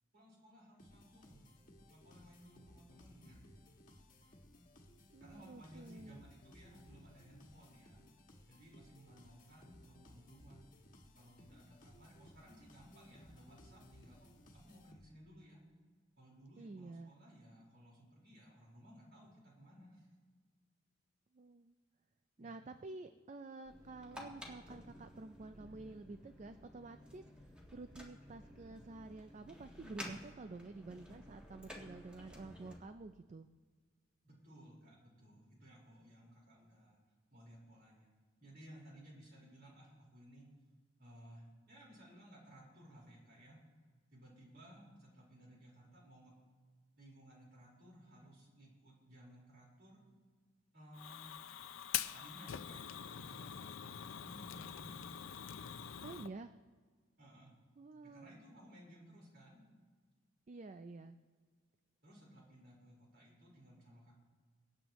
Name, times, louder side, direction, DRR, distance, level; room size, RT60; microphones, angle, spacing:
voice 1, 0.1-1.5 1.9-3.5 4.2-4.4 5.0-8.0 8.5-10.6 11.1-15.6 16.2-20.1 22.4-22.6 34.2-37.0 37.3-38.1 38.4-40.5 41.0-43.6 44.1-46.3 47.0-50.0 50.7-51.3 52.1-52.9 53.2-55.0 55.3-55.5 57.2-57.6 58.0-59.6 62.0-64.1, equal, 55° right, -4 dB, 4.5 m, -59 dB
sound 1, 0.8-15.4, left 1 dB, 45° left, 1.4 m, -61 dB
voice 2, 5.1-6.2 16.6-17.1 21.3-21.7 22.4-27.2 27.7-33.5 56.0-56.5 57.8-58.4 60.5-61.2, right 3 dB, 35° right, 9 dB, 0.4 m, -50 dB
sound 2, 23.6-32.8, equal, 5° right, 1.6 m, -53 dB
Fire, 50.9-56.3, left 10 dB, 80° left, 0.5 m, -44 dB
24.0 x 8.8 x 3.1 m, 1.5 s
head